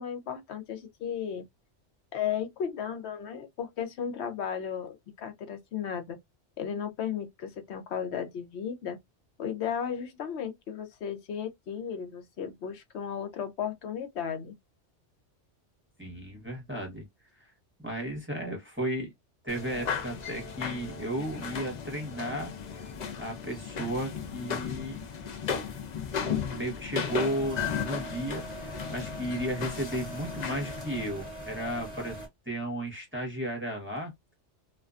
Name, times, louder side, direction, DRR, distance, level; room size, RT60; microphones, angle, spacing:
voice 1, 0.0-1.4 2.1-6.2 6.6-9.0 9.4-14.5, left 8 dB, 70° left, 0.9 m, -35 dB
voice 2, 16.0-17.1 17.4-17.5 17.8-19.1 19.4-22.5 23.2-25.0 26.5-34.1, right 1 dB, 10° right, 0.8 m, -34 dB
sound 1, 19.5-31.1, left 7 dB, 55° left, 0.5 m, -35 dB
sound 2, 27.1-32.3, right 1 dB, 30° left, 1.0 m, -42 dB
2.5 x 2.2 x 2.3 m
omnidirectional pair, 1.2 m